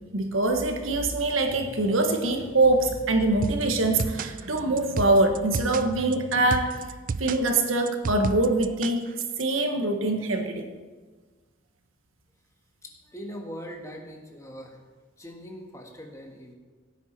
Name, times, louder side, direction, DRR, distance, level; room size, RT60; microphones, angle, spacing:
voice 1, 0.1-6.8 7.2-9.1 9.4-10.6, right 2 dB, 85° right, 5 dB, 1.6 m, -24 dB
sound 1, 3.4-9.4, right 4 dB, 40° right, 0.4 m, -33 dB
voice 2, 12.8-14.8 15.2-16.5, equal, 15° left, 2 dB, 1.5 m, -41 dB
16.5 x 9.1 x 4.5 m, 1.4 s
head